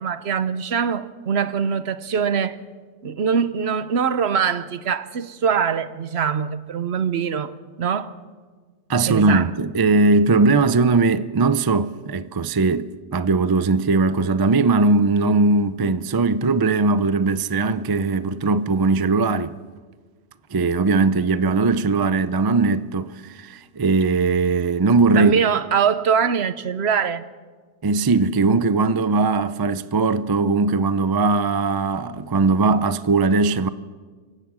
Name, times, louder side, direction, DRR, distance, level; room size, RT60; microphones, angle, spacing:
voice 1, 0.0-2.6 3.0-8.2 9.1-9.5 25.1-27.2, right 7 dB, 60° right, 1.0 m, -23 dB
voice 2, 8.9-19.5 20.5-25.4 27.8-33.7, right 3 dB, 40° right, 0.3 m, -19 dB
26.5 x 16.5 x 6.2 m
omnidirectional pair, 1.3 m